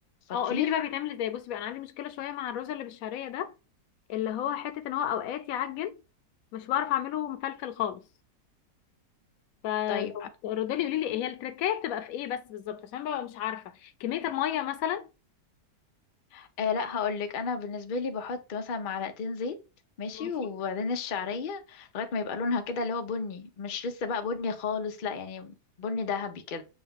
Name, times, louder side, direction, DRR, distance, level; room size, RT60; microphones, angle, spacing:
voice 1, 0.3-3.5 4.1-6.0 6.5-8.0 9.6-15.1 20.1-20.5, left 11 dB, 65° left, 0.9 m, -32 dB
voice 2, 9.9-10.3 16.3-19.6 20.0-26.6, left 5 dB, 85° left, 0.4 m, -32 dB
6.5 x 2.4 x 3.5 m
omnidirectional pair, 1.9 m